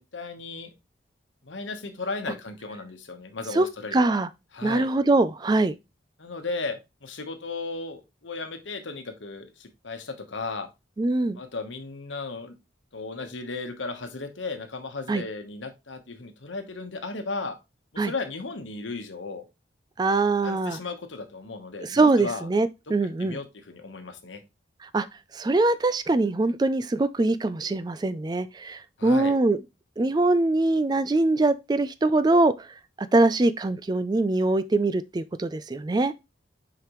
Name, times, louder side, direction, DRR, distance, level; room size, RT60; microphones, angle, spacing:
voice 1, 0.1-0.7 1.4-4.1 4.5-4.9 6.2-10.7 11.4-12.5 12.9-17.6 17.9-19.5 20.4-22.5 23.2-24.4 29.0-29.3, left 3 dB, 90° left, 1.1 m, -35 dB
voice 2, 3.5-4.3 4.6-5.8 11.0-11.4 15.1-15.2 18.0-18.1 20.0-20.8 21.8-23.4 24.8-25.1 25.3-29.6 30.0-32.7 33.1-36.1, right 2 dB, 20° right, 0.3 m, -23 dB
6.6 x 5.0 x 3.0 m
head